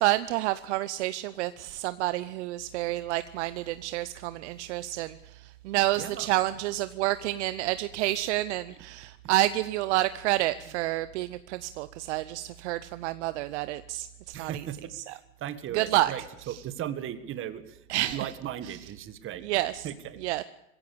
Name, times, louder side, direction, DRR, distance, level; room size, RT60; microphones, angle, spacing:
voice 1, 0.0-14.5 15.0-15.1 15.7-16.1 17.9-18.3 19.4-19.9 20.2-20.4, right 16 dB, 55° right, 14 dB, 0.8 m, -29 dB
voice 2, 5.9-6.3 9.2-9.4 14.3-19.4 19.8-20.2, right 10 dB, 30° right, 13 dB, 1.7 m, -37 dB
21.5 x 16.0 x 8.6 m, 0.89 s
hypercardioid pair, 115°, 40 cm